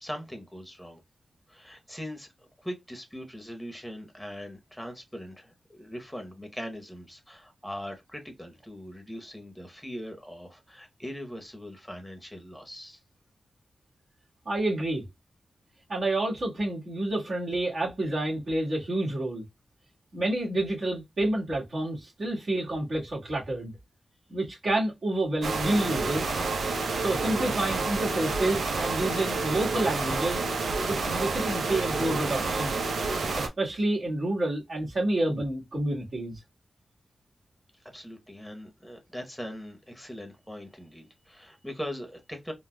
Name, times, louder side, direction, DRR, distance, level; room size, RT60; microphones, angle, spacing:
voice 1, 0.0-1.0 1.5-13.0 37.8-42.5, equal, ahead, 0.8 m, -41 dB
voice 2, 14.4-15.0 15.9-19.4 20.1-23.7 24.3-26.2 27.0-30.4 30.8-32.8 33.3-36.4, right 1 dB, 65° right, 1.5 m, -29 dB
sound 1, 25.4-33.5, right 3 dB, 85° right, 0.6 m, -29 dB
3.9 x 2.1 x 2.2 m
wide cardioid pair, 95°, 0 cm